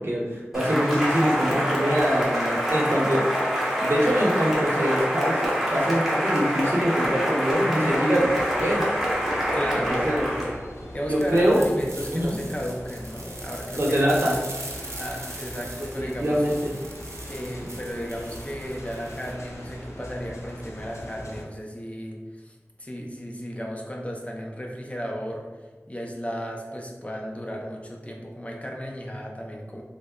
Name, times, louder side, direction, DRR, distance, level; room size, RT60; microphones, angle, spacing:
voice 1, 0.0-3.2 3.8-8.9 9.9-10.3 11.1-11.7 12.1-12.4 13.8-14.4 16.0-16.8, equal, 55° right, -3 dB, 0.8 m, -24 dB
Cheering / Applause, 0.5-10.6, equal, 5° right, 0.9 m, -25 dB
sound 1, 8.2-21.4, left 1 dB, 90° left, 0.5 m, -41 dB
voice 2, 9.5-10.5 10.9-14.0 15.0-16.4 17.3-25.5 25.9-29.8, equal, 25° left, 0 dB, 0.5 m, -34 dB
sound 2, 11.2-19.3, right 2 dB, 90° right, 0.5 m, -41 dB
3.3 x 2.1 x 3.6 m, 1.3 s
wide cardioid pair, 45°, 5 cm